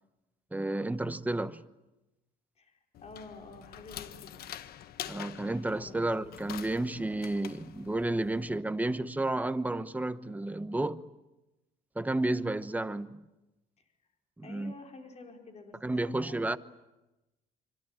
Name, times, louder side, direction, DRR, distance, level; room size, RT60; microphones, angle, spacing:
voice 1, 0.5-1.6 5.1-11.1 11.9-13.2 14.4-14.7 15.8-16.6, right 2 dB, 10° right, 1.1 m, -31 dB
voice 2, 2.6-4.5 5.7-6.1 13.8-13.9 14.4-16.6, left 3 dB, 40° left, 4.9 m, -49 dB
sound 1, 2.9-8.6, left 11 dB, 65° left, 1.3 m, -46 dB
25.5 x 25.5 x 8.9 m
cardioid pair, 110°, 17 cm